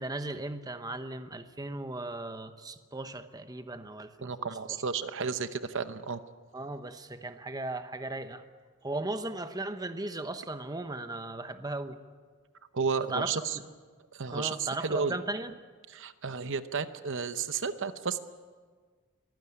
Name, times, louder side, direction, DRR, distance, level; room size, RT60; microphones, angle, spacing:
voice 1, 0.0-4.8 6.5-8.4 8.8-12.0 13.1-13.6 14.3-15.5, right 2 dB, 20° right, 9 dB, 1.0 m, -37 dB
voice 2, 4.2-6.2 12.7-13.6 14.1-15.2 15.9-18.2, right 5 dB, 60° right, 11 dB, 0.9 m, -32 dB
23.0 x 15.5 x 10.0 m, 1.5 s
head